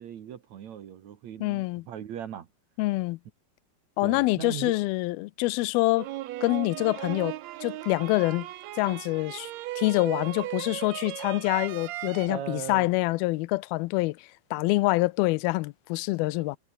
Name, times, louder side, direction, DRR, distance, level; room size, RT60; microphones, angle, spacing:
voice 1, 0.0-2.5 4.0-4.8 12.3-12.9, right 9 dB, 60° right, 2.5 m, -38 dB
voice 2, 1.4-1.8 2.8-3.2 4.0-6.1 6.4-8.5 8.8-9.5 9.8-16.6, left 21 dB, 90° left, 2.5 m, -26 dB
sound 1, 6.0-12.3, right 15 dB, 85° right, 1.5 m, -37 dB
omnidirectional pair, 4.2 m